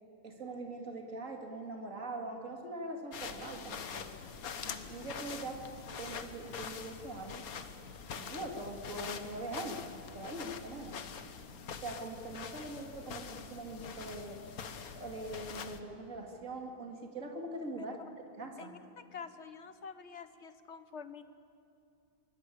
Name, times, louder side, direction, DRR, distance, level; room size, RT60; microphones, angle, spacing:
voice 1, 0.2-4.1 4.6-7.5 8.1-9.9 10.1-11.0 11.7-14.4 14.9-18.0 18.4-18.7, right 2 dB, 60° right, 2 dB, 2.9 m, -42 dB
sound 1, 3.1-15.8, left 6 dB, 80° left, 1.6 m, -44 dB
voice 2, 18.6-21.2, left 6 dB, 55° left, 11 dB, 1.3 m, -47 dB
23.5 x 21.0 x 8.6 m, 2.6 s
omnidirectional pair, 1.5 m